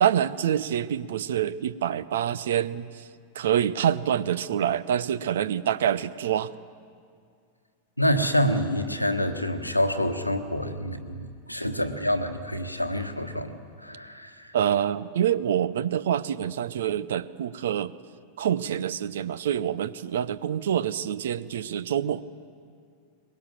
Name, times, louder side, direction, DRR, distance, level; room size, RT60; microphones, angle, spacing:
voice 1, 0.0-3.1 3.3-6.5 14.5-17.9 18.4-22.2, right 9 dB, 60° right, 18 dB, 0.6 m, -26 dB
voice 2, 8.0-14.5, equal, 90° left, 7 dB, 1.3 m, -27 dB
23.0 x 21.0 x 7.4 m, 2.2 s
figure-of-eight pair, 90°, 0 cm